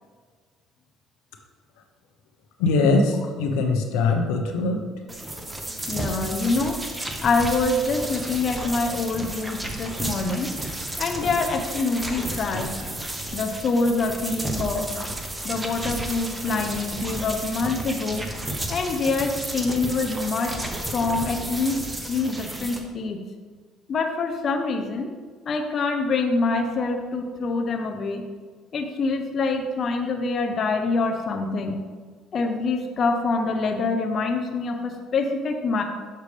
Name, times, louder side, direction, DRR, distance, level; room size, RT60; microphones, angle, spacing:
voice 1, 2.6-4.8, left 3 dB, 90° left, 3 dB, 0.9 m, -21 dB
sound 1, 5.1-22.8, right 1 dB, 15° right, 1.0 m, -32 dB
voice 2, 5.9-6.8 7.2-10.5 11.0-12.7 13.3-14.9 15.4-18.3 18.7-20.6 20.9-21.8 22.1-23.2 23.9-25.1 25.5-28.2 28.7-31.8 32.3-35.8, left 3 dB, 45° left, 3 dB, 0.7 m, -25 dB
6.7 x 6.4 x 3.3 m, 1.5 s
cardioid pair, 100°, 0 cm